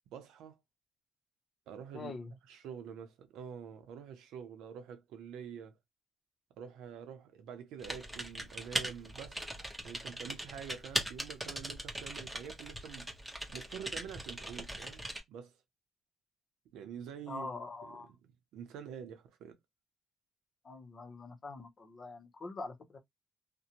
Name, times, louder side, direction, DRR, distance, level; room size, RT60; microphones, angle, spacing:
voice 1, 0.1-0.6 1.7-2.1 2.5-5.7 6.6-9.4 9.8-13.1 13.5-15.0 15.3-15.5 16.7-17.5 18.2-19.6, right 8 dB, 90° right, 0.6 m, -47 dB
voice 2, 1.9-2.3 17.3-18.1 20.6-23.0, left 3 dB, 45° left, 0.7 m, -44 dB
Typing, 7.8-15.2, right 1 dB, 10° right, 0.9 m, -40 dB
2.5 x 2.1 x 2.8 m
cardioid pair, 90°, 0 cm